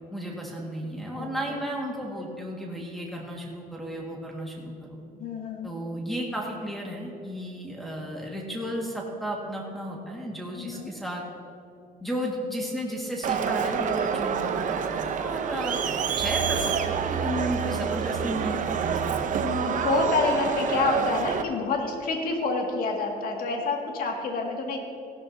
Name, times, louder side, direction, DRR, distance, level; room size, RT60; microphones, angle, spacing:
voice 1, 0.1-5.0 5.6-11.2 12.0-15.8 16.2-19.4, equal, ahead, -3 dB, 1.9 m, -33 dB
voice 2, 5.1-5.7 10.6-10.9 17.8-17.9 19.3-24.8, left 3 dB, 60° left, 1 dB, 2.2 m, -28 dB
Crowd, 13.2-21.4, right 7 dB, 50° right, 0.8 m, -27 dB
16.5 x 12.0 x 2.8 m, 2.6 s
cardioid pair, 110°, 17 cm